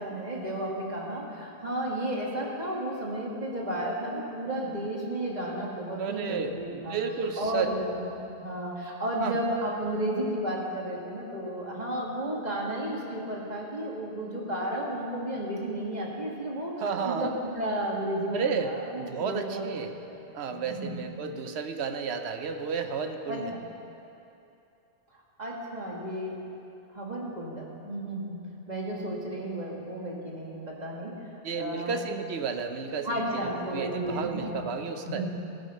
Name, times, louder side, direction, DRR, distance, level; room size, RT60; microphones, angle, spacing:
voice 1, 0.0-7.0 7.4-16.7 17.0-19.7 19.9-20.2 20.5-21.3 23.3-23.6 25.4-26.4 26.9-28.4 28.7-31.1 31.5-31.9 33.0-34.7 35.0-35.3, right 1 dB, 40° right, -3 dB, 1.7 m, -33 dB
voice 2, 6.0-7.7 9.2-9.4 16.8-17.3 18.3-19.9 20.3-23.5 31.4-35.3, right 5 dB, 75° right, 6 dB, 1.0 m, -32 dB
15.5 x 6.5 x 5.3 m, 2.7 s
omnidirectional pair, 1.1 m